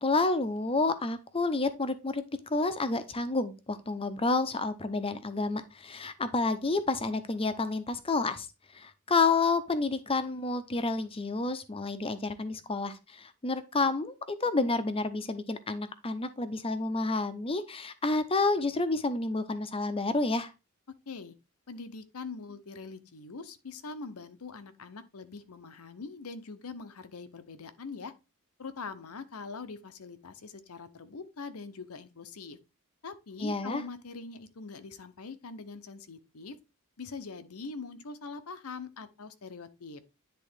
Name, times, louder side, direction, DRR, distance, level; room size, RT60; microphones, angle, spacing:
voice 1, 0.0-8.5 8.7-20.5 33.4-33.8, left 3 dB, 25° left, 0.7 m, -29 dB
voice 2, 21.1-21.4 21.7-28.2 28.6-32.6 33.0-36.6 37.0-40.0, left 4 dB, 75° left, 0.8 m, -43 dB
10.0 x 3.7 x 3.6 m
head